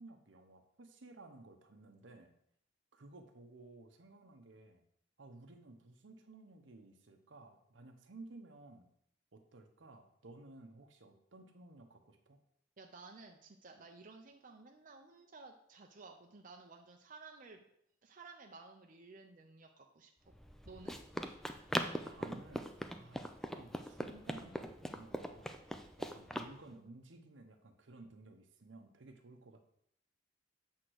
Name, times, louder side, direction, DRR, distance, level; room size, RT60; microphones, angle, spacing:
voice 1, 0.0-2.3 2.9-4.8 5.2-8.9 9.3-12.4 22.0-25.6 26.0-29.6, right 2 dB, 70° right, 6 dB, 0.9 m, -55 dB
voice 2, 12.8-17.6 18.0-20.3 20.6-21.0, right 3 dB, 45° right, 3 dB, 0.6 m, -55 dB
Run, 20.3-26.5, equal, ahead, 0.4 m, -41 dB
7.8 x 3.7 x 6.3 m, 0.75 s
head